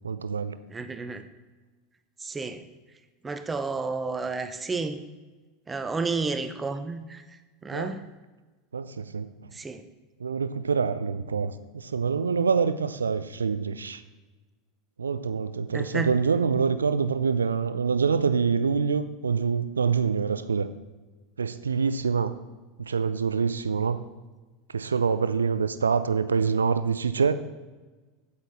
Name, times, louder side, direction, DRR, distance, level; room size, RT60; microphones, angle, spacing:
voice 1, 0.0-0.6 7.7-8.0 8.7-9.3 10.2-14.0 15.0-20.7 21.4-22.3 22.8-24.0 24.7-27.3, right 5 dB, 80° right, 13 dB, 0.4 m, -26 dB
voice 2, 0.7-1.2 2.2-2.6 3.2-5.0 5.7-7.2 7.6-8.0 9.5-9.8 15.7-16.1, right 4 dB, 20° right, 9 dB, 0.8 m, -31 dB
8.8 x 8.3 x 4.1 m, 1.2 s
figure-of-eight pair, 80°, 0 cm